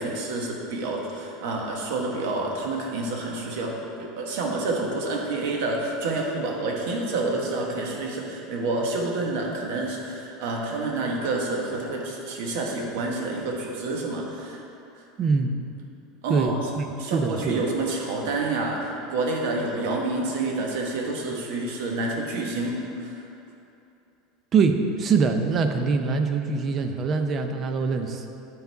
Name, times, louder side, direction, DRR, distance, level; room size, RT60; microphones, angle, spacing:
voice 1, 0.0-14.6 16.2-16.6 17.0-23.2, right 2 dB, 70° right, 0 dB, 1.2 m, -28 dB
voice 2, 15.2-15.5 16.3-16.8 17.1-17.6 24.5-28.2, right 4 dB, 30° right, 6 dB, 0.5 m, -23 dB
9.5 x 4.0 x 4.6 m, 2.8 s
supercardioid pair, 150°, 0 cm